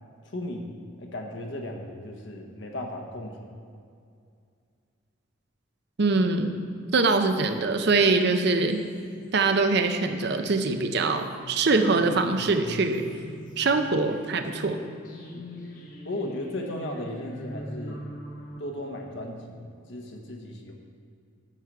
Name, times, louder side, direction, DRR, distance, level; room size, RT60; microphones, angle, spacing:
voice 1, 0.2-3.6 15.3-15.7 16.0-18.0 18.6-20.7, left 1 dB, 60° left, 2 dB, 1.0 m, -36 dB
voice 2, 6.0-6.6 6.9-8.8 9.3-13.0 13.6-14.8, right 3 dB, 55° right, 7 dB, 0.6 m, -23 dB
sound 1, 7.3-18.6, equal, 40° left, 1.1 m, -43 dB
10.0 x 6.4 x 4.7 m, 2.3 s
head